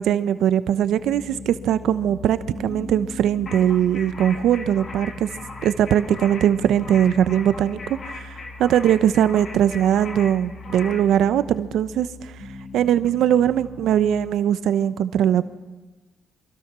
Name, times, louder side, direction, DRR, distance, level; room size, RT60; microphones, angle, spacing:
voice 1, 0.0-5.3 5.6-12.3 12.7-15.5, right 10 dB, 80° right, 13 dB, 1.0 m, -20 dB
sound 1, 1.0-14.3, left 3 dB, 85° left, 5.9 m, -40 dB
sound 2, 3.5-11.1, left 3 dB, 45° left, 3.4 m, -39 dB
28.5 x 24.0 x 6.2 m, 1.2 s
cardioid pair, 90°, 0 cm